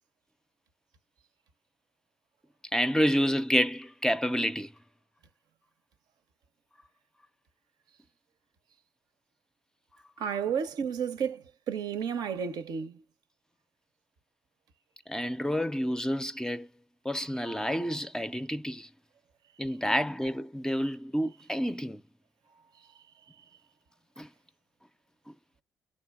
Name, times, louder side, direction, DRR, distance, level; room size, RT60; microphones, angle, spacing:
voice 1, 2.7-4.7 15.1-16.7 17.0-18.9 19.6-22.0 24.2-24.3, equal, 10° left, 0.4 m, -29 dB
voice 2, 10.2-13.0, right 7 dB, 70° right, 0.6 m, -32 dB
6.4 x 2.8 x 2.3 m
supercardioid pair, 55°, 7 cm